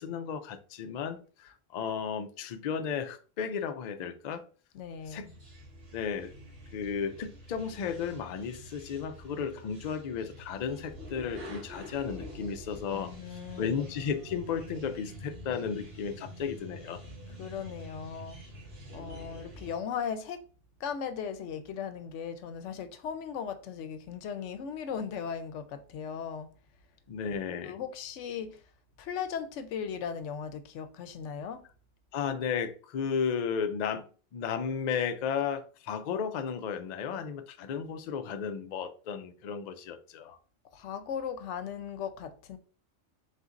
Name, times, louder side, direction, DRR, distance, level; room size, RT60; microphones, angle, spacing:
voice 1, 0.0-4.4 5.1-5.2 5.9-6.3 6.7-13.1 13.6-17.0 27.1-27.7 32.1-40.4, left 6 dB, 65° left, 0.4 m, -34 dB
voice 2, 4.7-5.3 12.9-13.8 17.4-18.4 18.9-20.4 20.8-26.5 27.6-28.6 29.0-31.6 40.7-42.6, left 7 dB, 80° left, 0.9 m, -37 dB
sound 1, 5.0-19.7, equal, 75° right, 1.9 m, -47 dB
4.1 x 4.0 x 2.4 m
omnidirectional pair, 1.2 m